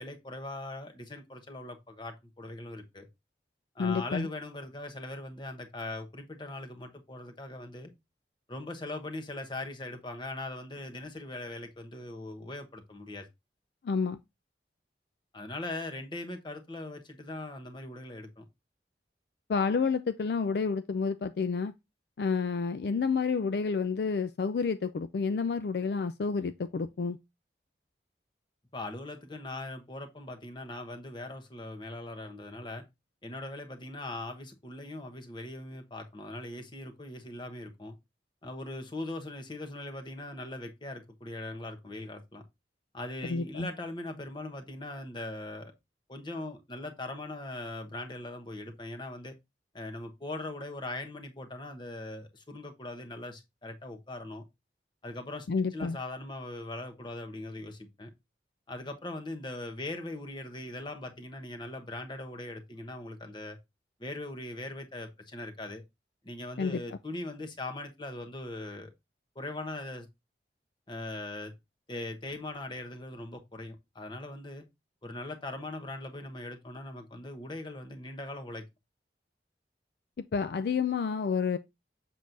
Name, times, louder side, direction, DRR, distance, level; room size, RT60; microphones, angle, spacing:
voice 1, 0.0-3.1 3.7-7.9 8.5-13.3 15.3-18.4 28.7-32.8 33.2-37.9 38.4-42.4 42.9-45.7 46.1-49.3 49.7-54.4 55.0-55.5 55.7-58.1 58.7-63.6 64.0-65.8 66.2-68.9 69.3-70.1 70.9-71.5 71.9-74.6 75.0-78.6, left 2 dB, 25° left, 1.0 m, -40 dB
voice 2, 3.8-4.3 13.8-14.2 19.5-21.7 22.2-27.2 43.2-43.7 55.5-56.0 66.6-66.8 80.3-81.6, left 5 dB, 60° left, 0.4 m, -29 dB
7.3 x 6.0 x 2.6 m
head